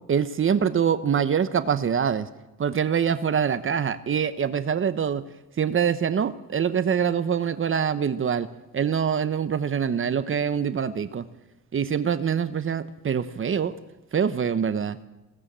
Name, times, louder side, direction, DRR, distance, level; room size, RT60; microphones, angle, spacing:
voice 1, 0.0-2.3 2.6-5.2 5.6-8.5 8.7-11.2 11.7-13.7 14.1-15.0, right 7 dB, 45° right, 12 dB, 1.1 m, -24 dB
20.5 x 17.0 x 7.6 m, 0.99 s
cardioid pair, 90°, 30 cm